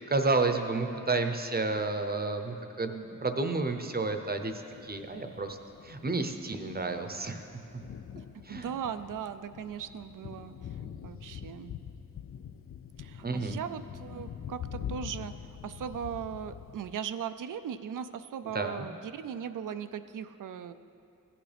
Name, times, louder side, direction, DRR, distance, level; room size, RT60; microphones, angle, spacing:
voice 1, 0.1-4.5 4.8-5.6 5.8-7.4 8.4-8.7 13.2-13.6 18.5-18.9, right 3 dB, 30° right, 6 dB, 0.7 m, -31 dB
Thunder, 4.3-16.9, left 8 dB, 45° left, 0.4 m, -45 dB
voice 2, 8.3-10.8 11.0-11.7 13.0-20.7, right 8 dB, 70° right, 11 dB, 0.5 m, -38 dB
15.5 x 8.7 x 3.4 m, 2.7 s
wide cardioid pair, 90°, 33 cm